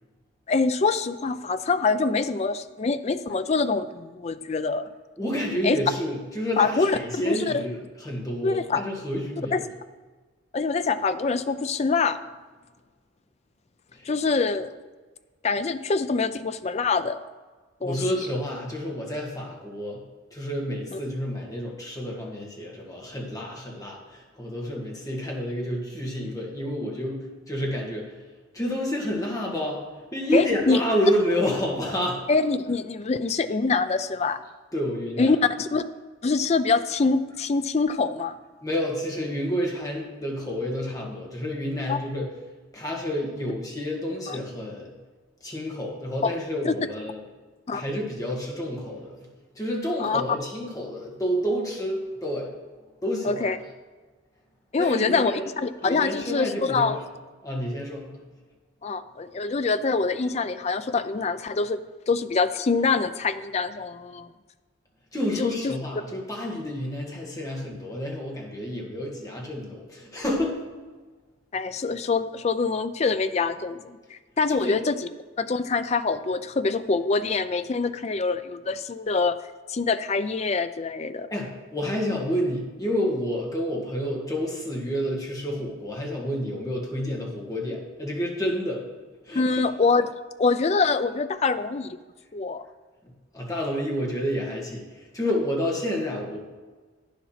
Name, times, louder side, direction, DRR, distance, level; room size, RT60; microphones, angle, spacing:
voice 1, 0.5-4.8 5.6-5.8 6.6-7.6 8.4-8.8 9.5-9.6 10.5-12.2 14.1-14.7 15.4-17.2 17.8-18.0 20.9-21.0 30.3-30.8 32.3-34.4 35.2-35.8 36.2-38.4 41.9-42.0 44.3-44.4 46.2-46.3 46.6-46.7 47.7-47.8 50.0-50.2 53.2-53.6 54.7-57.0 58.8-61.8 62.1-64.3 65.4-65.7 71.5-75.0 75.4-79.4 79.7-81.3 89.3-90.1 90.4-92.0 92.3-92.7, left 4 dB, 35° left, 11 dB, 0.4 m, -25 dB
voice 2, 5.2-9.7 13.9-14.1 17.8-20.0 20.3-28.1 28.5-29.8 30.1-32.2 34.7-35.4 38.6-42.3 42.7-44.9 45.4-47.2 47.7-49.2 49.6-52.5 53.0-53.6 54.8-55.5 55.8-57.0 57.4-58.1 65.1-70.6 74.5-74.8 81.3-88.8 89.3-89.7 93.3-96.5, equal, 15° left, -2 dB, 1.8 m, -29 dB
9.6 x 7.2 x 5.8 m, 1.3 s
head